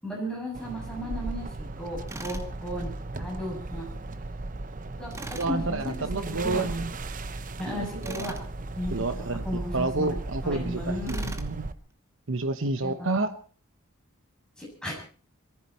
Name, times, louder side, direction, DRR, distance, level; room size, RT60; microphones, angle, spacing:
voice 1, 0.0-2.9 3.2-3.9 5.0-5.1 5.4-5.9 6.3-6.6 7.6-8.3 8.8-10.2 10.4-11.3 12.8-13.1 14.6-14.9, left 1 dB, 5° left, -3 dB, 7.6 m, -35 dB
sound 1, 0.5-11.7, right 2 dB, 40° right, 0.7 m, -36 dB
Tools, 2.1-2.5 5.1-5.5 8.0-8.5 11.1-11.5, right 2 dB, 15° right, 1.0 m, -40 dB
voice 2, 5.3-6.9 7.7-8.4 8.9-11.7 12.3-13.4, right 3 dB, 65° right, 9 dB, 1.0 m, -30 dB
22.5 x 14.5 x 4.3 m, 0.41 s
head